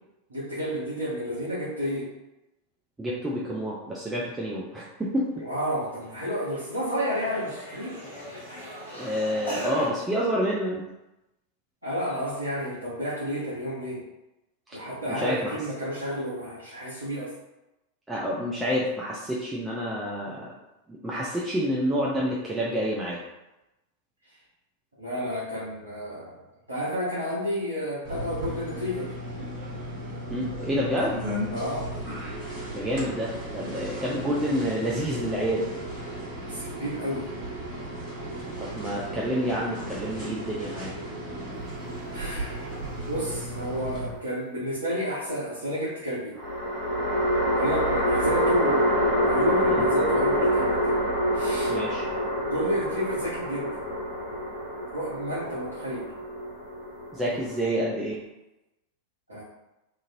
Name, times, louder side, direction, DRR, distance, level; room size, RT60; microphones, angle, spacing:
voice 1, 0.3-2.1 5.4-8.0 11.8-14.0 14.7-17.3 25.0-29.1 31.5-31.9 36.4-37.3 42.1-42.8 43.1-46.4 47.5-50.9 51.3-51.7 52.4-53.8 54.9-56.1 57.3-57.4 59.3-59.4, equal, 80° right, -9 dB, 0.8 m, -31 dB
voice 2, 3.0-5.3 8.9-10.8 15.2-15.6 18.1-20.5 21.0-23.2 30.3-31.2 32.7-35.6 38.6-40.9 51.7-52.0 57.1-58.1, equal, 10° right, -5 dB, 0.5 m, -28 dB
sound 1, 5.5-5.7 6.0-9.9, equal, 75° left, 1.2 m, -39 dB
sound 2, 28.0-44.1, right 1 dB, 45° right, 1.4 m, -35 dB
sound 3, 43.2-44.1 46.4-57.7, equal, 25° right, 1.1 m, -26 dB
3.0 x 2.5 x 2.6 m, 0.96 s
figure-of-eight pair, 90°, 0 cm